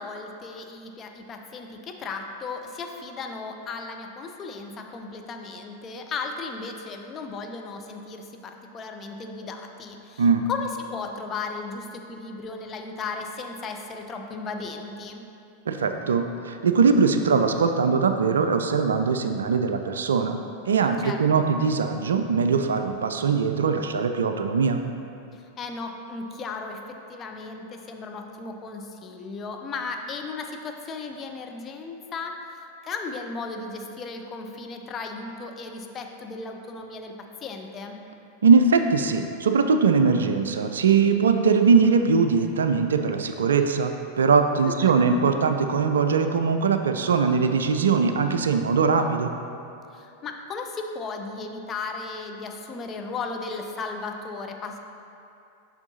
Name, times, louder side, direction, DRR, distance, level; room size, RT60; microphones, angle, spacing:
voice 1, 0.0-15.3 20.8-21.2 25.3-38.0 44.7-44.9 49.9-54.8, left 4 dB, 25° left, 3 dB, 0.5 m, -36 dB
voice 2, 10.2-10.5 15.7-20.4 20.7-24.8 38.4-49.3, right 5 dB, 65° right, 7 dB, 0.3 m, -21 dB
7.0 x 5.6 x 2.7 m, 2.7 s
figure-of-eight pair, 90°, 0 cm